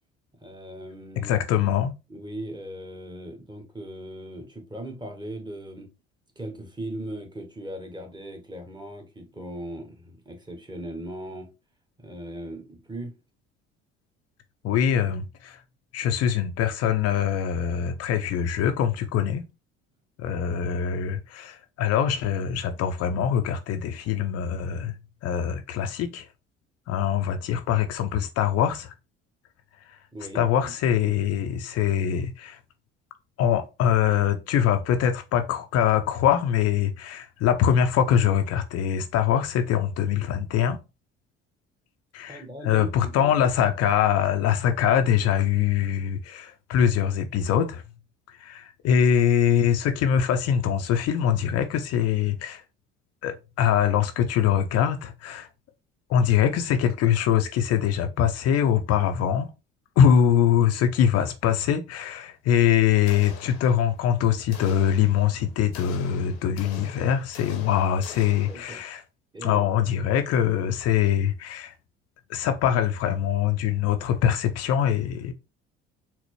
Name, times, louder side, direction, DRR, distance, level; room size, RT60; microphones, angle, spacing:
voice 1, 0.4-1.3 2.1-5.9 6.4-11.5 12.0-13.1 30.1-30.7 42.3-43.5 60.3-60.4 68.5-68.8 69.3-69.6, right 1 dB, 15° right, 1.1 m, -38 dB
voice 2, 1.2-1.9 14.6-15.6 15.9-19.4 20.2-24.9 25.2-26.3 26.9-28.9 30.3-32.6 33.4-40.8 42.1-47.8 48.4-52.6 53.2-55.5 56.1-59.5 60.0-69.0 69.4-71.7 72.3-75.3, left 9 dB, 60° left, 0.5 m, -23 dB
sound 1, 63.0-64.1 64.5-69.0, left 7 dB, 85° left, 0.8 m, -45 dB
4.2 x 2.0 x 3.0 m
hypercardioid pair, 65°, 29 cm